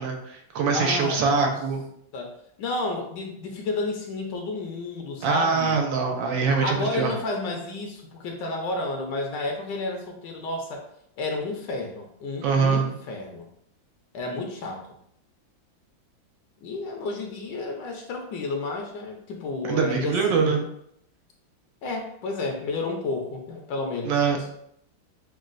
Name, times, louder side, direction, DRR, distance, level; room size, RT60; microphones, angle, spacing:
voice 1, 0.0-1.8 5.2-7.1 12.4-13.0 19.7-20.6 24.0-24.5, right 5 dB, 80° right, 2 dB, 1.4 m, -23 dB
voice 2, 0.7-1.5 2.1-5.8 6.6-10.8 11.2-13.5 14.1-14.8 16.6-20.7 21.8-24.2, left 3 dB, 70° left, 2 dB, 1.2 m, -31 dB
6.1 x 2.3 x 2.5 m, 0.71 s
omnidirectional pair, 2.1 m